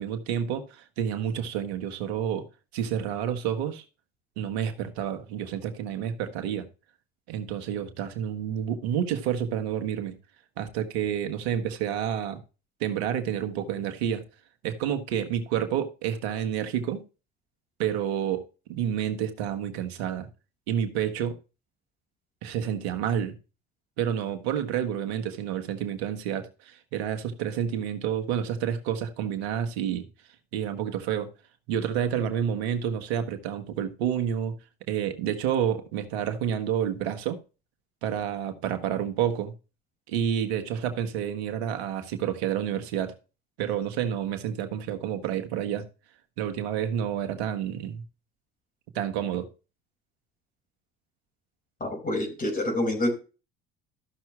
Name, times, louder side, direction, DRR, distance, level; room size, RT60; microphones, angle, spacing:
voice 1, 0.0-2.4 2.7-3.8 4.4-6.7 7.3-10.1 10.6-12.4 12.8-14.2 14.6-17.0 17.8-18.4 18.7-20.3 20.7-21.4 22.4-23.3 24.0-30.1 30.5-31.3 31.7-34.6 34.9-37.4 38.0-39.5 40.1-43.1 43.6-45.9 46.4-48.0 48.9-49.5, right 9 dB, 90° right, 1.6 m, -29 dB
voice 2, 51.8-53.1, left 1 dB, 25° left, 4.7 m, -27 dB
14.0 x 6.0 x 3.3 m
hypercardioid pair, 65°, 31 cm